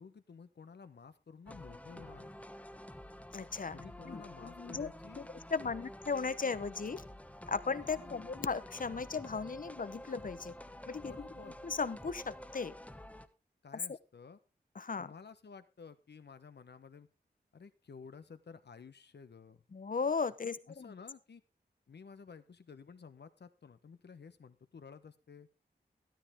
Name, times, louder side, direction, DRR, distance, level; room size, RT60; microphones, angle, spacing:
voice 1, 0.0-2.3 3.7-5.3 5.6-5.8 7.8-8.2 11.0-11.6 13.6-14.4 15.0-17.1 17.5-19.6 20.4-21.4 21.9-25.5, left 5 dB, 80° left, 11 dB, 1.1 m, -53 dB
sound 1, 1.5-13.3, left 1 dB, 10° left, 1.2 m, -49 dB
voice 2, 3.3-3.8 4.0-7.0 7.5-10.5 10.9-11.1 11.6-12.7 13.9-14.0 14.7-15.1 19.7-20.9, left 5 dB, 55° left, 16 dB, 0.9 m, -37 dB
13.0 x 12.5 x 3.6 m, 0.28 s
wide cardioid pair, 65°, 17 cm